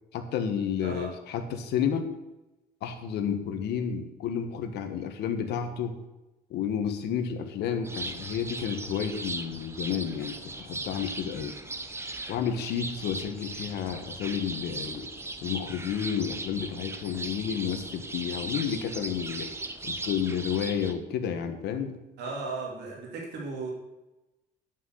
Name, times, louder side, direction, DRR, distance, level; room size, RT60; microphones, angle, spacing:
voice 1, 0.1-2.1 2.8-6.0 6.5-11.6 12.3-15.1 15.4-19.5 19.8-22.0, left 8 dB, 80° left, 7 dB, 1.4 m, -31 dB
sound 1, 7.8-20.9, right 2 dB, 15° right, 0.9 m, -38 dB
voice 2, 22.2-23.7, right 3 dB, 80° right, -2 dB, 3.3 m, -36 dB
9.3 x 5.8 x 8.0 m, 1.0 s
cardioid pair, 110°, 17 cm